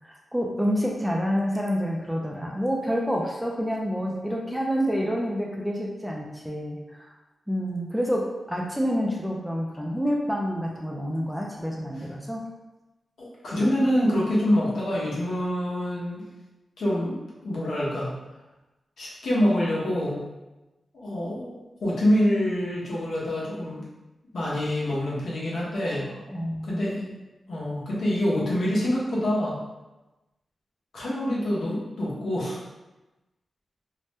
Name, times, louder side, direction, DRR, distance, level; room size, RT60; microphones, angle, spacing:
voice 1, 0.0-7.1 7.5-12.4 26.1-27.1, equal, ahead, -2 dB, 0.3 m, -28 dB
voice 2, 13.2-16.3 16.8-17.2 17.4-18.1 19.0-20.2 20.9-23.8 24.3-26.1 26.6-27.0 27.5-29.6 30.9-32.6, left 1 dB, 75° left, -7 dB, 0.9 m, -26 dB
2.7 x 2.1 x 3.3 m, 1.0 s
wide cardioid pair, 170°, 0 cm